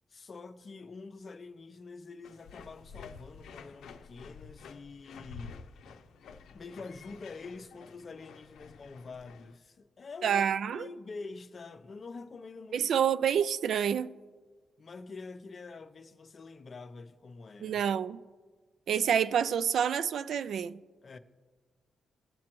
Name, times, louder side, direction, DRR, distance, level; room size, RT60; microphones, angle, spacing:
voice 1, 0.1-5.6 6.5-13.1 14.8-17.8 21.0-21.2, left 4 dB, 35° left, 0.5 m, -46 dB
sound 1, 2.2-9.6, left 5 dB, 90° left, 0.5 m, -50 dB
voice 2, 10.2-10.9 12.7-14.1 17.6-18.2 18.9-20.8, right 8 dB, 70° right, 0.3 m, -28 dB
18.0 x 7.4 x 3.0 m
cardioid pair, 135°, 0 cm